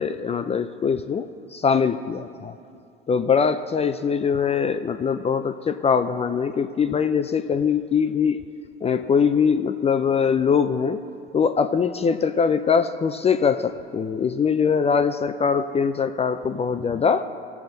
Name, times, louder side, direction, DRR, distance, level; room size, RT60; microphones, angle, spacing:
voice 1, 0.0-2.5 3.1-8.4 8.8-11.0 11.3-17.2, left 6 dB, 20° left, 9 dB, 0.4 m, -22 dB
17.5 x 7.0 x 3.9 m, 2.5 s
hypercardioid pair, 85°, 31 cm